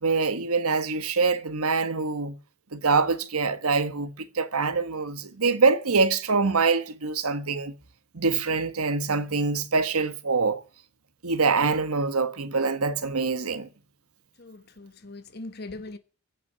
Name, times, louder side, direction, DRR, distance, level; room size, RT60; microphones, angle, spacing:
voice 1, 0.0-2.4 2.7-7.7 8.1-10.6 11.2-13.7, right 4 dB, 85° right, 1.2 m, -25 dB
voice 2, 14.4-16.0, left 2 dB, 45° left, 1.2 m, -40 dB
15.5 x 5.9 x 10.0 m
head